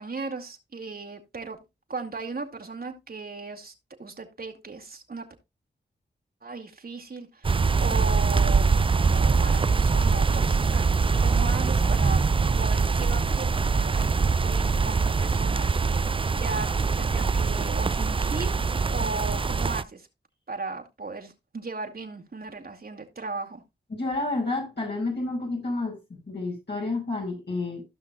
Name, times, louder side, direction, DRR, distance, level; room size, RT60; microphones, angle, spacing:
voice 1, 0.0-1.6 1.9-3.7 4.0-5.3 6.4-8.7 8.9-10.8 11.2-12.2 12.6-13.5 13.7-16.1 16.3-16.7 17.0-18.5 18.9-20.1 20.5-23.6, right 3 dB, 55° right, 2.1 m, -36 dB
sound 1, 7.4-19.8, right 4 dB, 30° right, 0.4 m, -23 dB
voice 2, 23.9-27.8, left 2 dB, 65° left, 5.5 m, -30 dB
15.5 x 5.8 x 2.4 m
cardioid pair, 40°, 19 cm